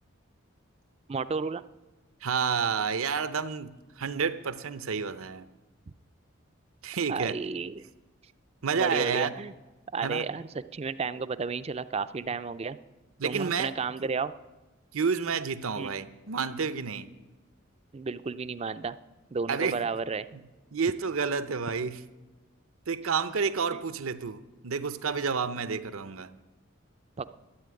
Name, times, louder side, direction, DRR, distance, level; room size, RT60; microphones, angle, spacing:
voice 1, 1.1-1.6 7.1-7.8 8.7-9.5 9.9-12.8 13.2-14.3 15.8-15.9 17.9-19.0 19.3-20.3 27.2-27.3, right 4 dB, 30° right, 14 dB, 0.4 m, -32 dB
voice 2, 2.2-5.4 6.8-7.4 8.6-9.3 10.0-10.2 13.2-13.7 14.9-17.1 19.5-19.8 20.3-20.4 20.7-22.0 22.9-26.3, right 5 dB, 80° right, 13 dB, 0.7 m, -30 dB
13.0 x 8.4 x 9.7 m, 1.2 s
head